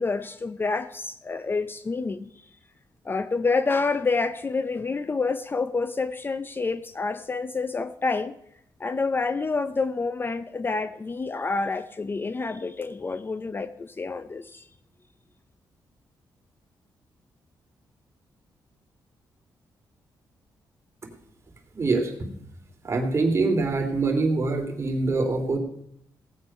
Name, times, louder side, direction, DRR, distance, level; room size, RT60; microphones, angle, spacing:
voice 1, 0.0-2.3 3.0-8.3 8.8-14.6, left 4 dB, 30° left, 12 dB, 0.6 m, -28 dB
voice 2, 21.7-22.1 22.8-25.6, right 3 dB, 35° right, 3 dB, 3.0 m, -24 dB
17.0 x 8.1 x 5.5 m, 0.73 s
cardioid pair, 95°, 8 cm